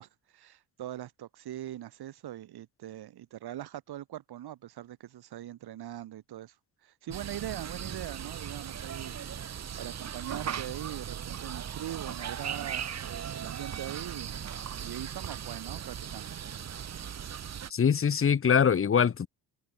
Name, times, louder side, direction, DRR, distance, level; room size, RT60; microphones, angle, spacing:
voice 1, 0.0-6.5 6.8-9.2 9.7-16.4, right 12 dB, 85° right, 5.0 m, -42 dB
sound 1, 7.1-17.7, right 8 dB, 45° right, 2.0 m, -38 dB
voice 2, 17.7-19.3, left 7 dB, 35° left, 1.8 m, -23 dB
cardioid pair, 155°, 37 cm